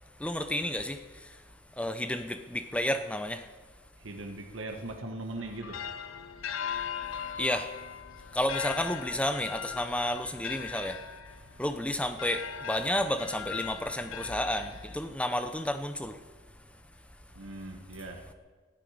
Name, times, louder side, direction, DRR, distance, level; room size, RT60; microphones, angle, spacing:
voice 1, 0.2-1.0 1.8-3.4 7.4-7.7 8.3-11.0 11.6-16.2, left 1 dB, 5° left, 8 dB, 0.7 m, -31 dB
voice 2, 4.0-5.8 17.3-18.2, right 2 dB, 85° right, 3 dB, 1.4 m, -39 dB
sound 1, 5.4-15.3, left 7 dB, 90° left, 0.7 m, -39 dB
19.0 x 12.0 x 5.0 m, 1.4 s
head